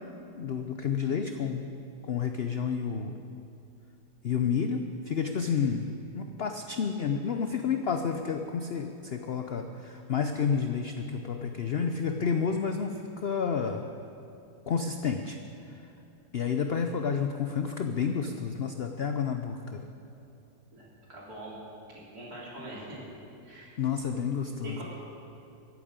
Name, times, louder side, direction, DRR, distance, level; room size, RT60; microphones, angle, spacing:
voice 1, 0.4-1.6 2.0-3.1 4.2-13.9 14.7-15.4 16.3-19.8 23.5-24.8, left 6 dB, 75° left, 6 dB, 0.5 m, -30 dB
voice 2, 20.7-21.6 22.1-23.0 23.4-23.8 24.6-24.8, right 1 dB, 60° right, -6 dB, 3.9 m, -43 dB
14.0 x 8.8 x 8.8 m, 2.7 s
omnidirectional pair, 1.9 m